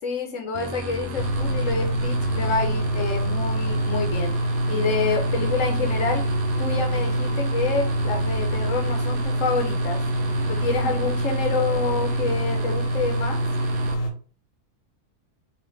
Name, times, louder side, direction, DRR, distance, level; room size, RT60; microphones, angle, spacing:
voice 1, 0.0-4.3 4.7-6.2 6.6-10.0 10.5-13.4, left 4 dB, 65° left, 3 dB, 0.9 m, -28 dB
sound 1, 0.5-13.9, right 2 dB, 70° right, 1.1 m, -35 dB
sound 2, 1.2-14.1, right 1 dB, 80° left, 1.2 m, -25 dB
4.2 x 2.5 x 3.1 m, 0.40 s
omnidirectional pair, 1.6 m